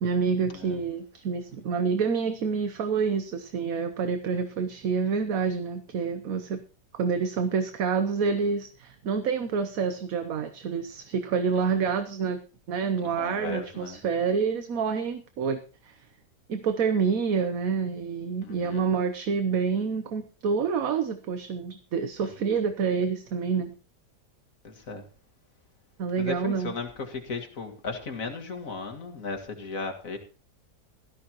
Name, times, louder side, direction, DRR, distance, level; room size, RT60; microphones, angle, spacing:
voice 1, 0.0-6.6 6.9-12.4 12.7-15.6 15.8-16.0 16.5-23.7 26.0-26.7, right 5 dB, 60° right, 8 dB, 1.3 m, -27 dB
voice 2, 13.0-14.0 18.4-18.9 22.2-22.5 24.6-25.0 26.2-30.2, left 4 dB, 55° left, 5 dB, 2.2 m, -36 dB
17.0 x 13.5 x 3.0 m, 0.36 s
omnidirectional pair, 1.8 m